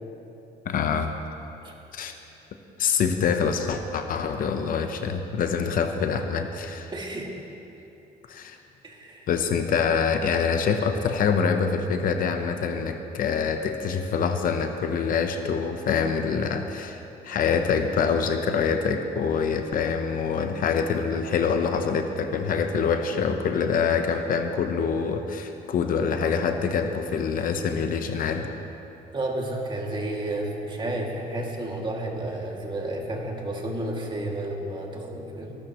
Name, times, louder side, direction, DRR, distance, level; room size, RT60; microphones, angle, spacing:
voice 1, 0.6-1.1 1.9-2.1 2.8-6.9 8.3-8.6 9.3-28.5, left 6 dB, 55° left, 6 dB, 0.9 m, -25 dB
voice 2, 6.9-7.3 8.8-9.3 29.1-35.6, right 1 dB, 30° right, -1 dB, 2.4 m, -31 dB
23.5 x 12.5 x 3.1 m, 2.9 s
cardioid pair, 110°, 17 cm